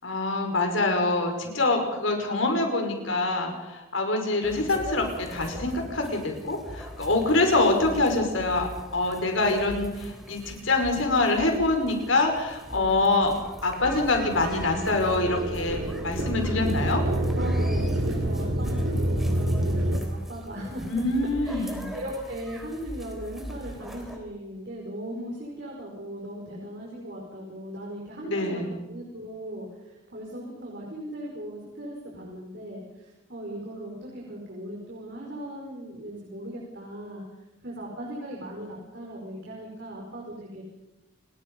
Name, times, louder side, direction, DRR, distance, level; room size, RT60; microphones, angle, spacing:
voice 1, 0.0-13.4 13.6-17.0 20.9-21.9 28.2-28.8, left 2 dB, 90° left, 4 dB, 5.6 m, -25 dB
sound 1, 4.4-24.2, equal, ahead, 3.5 m, -42 dB
voice 2, 12.7-13.1 17.3-21.1 21.4-37.2 37.6-40.6, right 1 dB, 60° right, -3 dB, 5.6 m, -38 dB
sound 2, 13.8-20.0, right 1 dB, 85° right, 3.7 m, -27 dB
29.5 x 20.5 x 5.6 m, 1.0 s
head